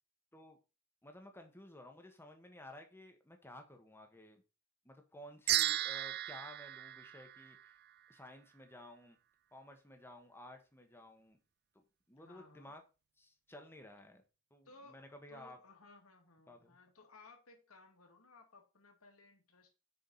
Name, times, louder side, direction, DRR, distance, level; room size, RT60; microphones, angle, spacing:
voice 1, 1.0-4.4 4.8-7.8 8.1-9.2 9.5-11.4 11.7-12.8 13.2-14.2 14.5-15.6 16.5-16.8, left 1 dB, 10° left, 5 dB, 1.4 m, -54 dB
sound 1, 5.5-7.9, right 14 dB, 50° right, 0.3 m, -35 dB
voice 2, 12.2-12.8 14.6-19.7, left 3 dB, 85° left, 3 dB, 2.3 m, -60 dB
6.7 x 5.1 x 5.5 m, 0.31 s
head